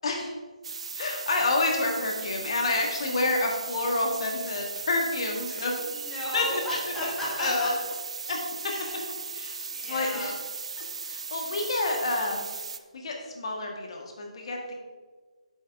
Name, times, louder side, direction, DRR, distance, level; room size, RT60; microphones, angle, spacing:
sound 1, 0.6-12.8, right 5 dB, 55° right, 0.5 m, -37 dB
voice 1, 1.0-5.7 6.3-6.6 7.0-7.1 7.4-7.7 8.3-8.4 9.3-10.3 11.0-12.5 12.9-14.7, left 2 dB, 50° left, 1 dB, 1.7 m, -28 dB
voice 2, 5.5-7.7 8.6-9.1 9.7-10.4, equal, 10° left, -6 dB, 2.2 m, -35 dB
8.0 x 7.6 x 3.6 m, 1.4 s
figure-of-eight pair, 145°, 4 cm